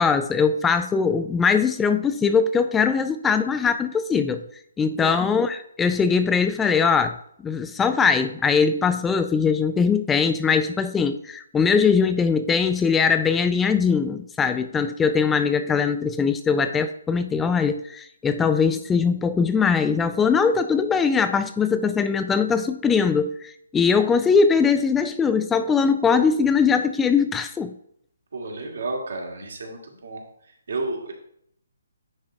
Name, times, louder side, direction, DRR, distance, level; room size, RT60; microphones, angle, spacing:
voice 1, 0.0-4.4 4.8-7.1 7.4-27.7, left 5 dB, 10° left, 10 dB, 0.3 m, -21 dB
voice 2, 28.3-30.2 30.7-31.1, right 2 dB, 75° right, 0 dB, 2.1 m, -31 dB
9.5 x 3.7 x 4.4 m, 0.70 s
hypercardioid pair, 150°, 0 cm